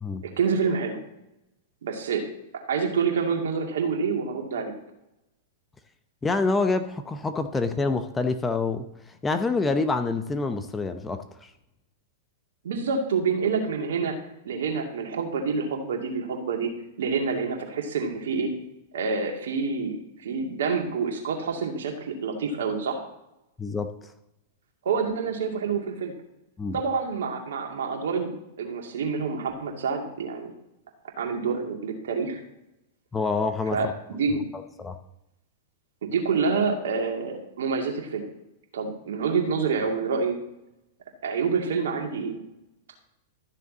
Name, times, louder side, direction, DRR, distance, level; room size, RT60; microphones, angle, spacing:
voice 1, 0.2-1.0 1.8-2.2 2.7-4.7 12.6-14.2 14.4-16.7 17.0-18.5 18.9-20.0 20.2-23.0 24.8-26.1 26.7-28.3 28.6-30.5 31.2-32.4 33.7-34.4 36.0-38.3 38.7-40.4 41.2-42.4, right 5 dB, 70° right, 2 dB, 2.3 m, -27 dB
voice 2, 6.2-8.9 9.2-11.5 23.6-23.9 26.6-26.8 33.1-33.9 34.8-35.0, left 3 dB, 15° left, 9 dB, 0.8 m, -26 dB
13.0 x 6.6 x 4.1 m, 0.88 s
hypercardioid pair, 105°, 0 cm